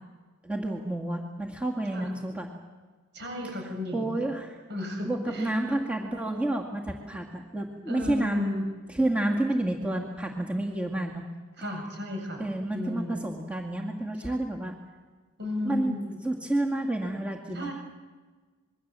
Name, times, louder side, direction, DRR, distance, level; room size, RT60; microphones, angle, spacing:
voice 1, 0.4-2.5 3.4-3.5 3.9-4.6 5.0-8.4 8.9-11.3 12.4-14.8 15.6-15.9 16.2-17.7, right 1 dB, 5° right, 0 dB, 2.1 m, -30 dB
voice 2, 3.1-4.2 4.7-5.5 7.9-8.6 11.6-12.5 12.7-13.2 15.4-16.2 17.5-17.7, left 1 dB, 55° right, 2 dB, 7.6 m, -33 dB
26.5 x 22.5 x 7.6 m, 1.3 s
head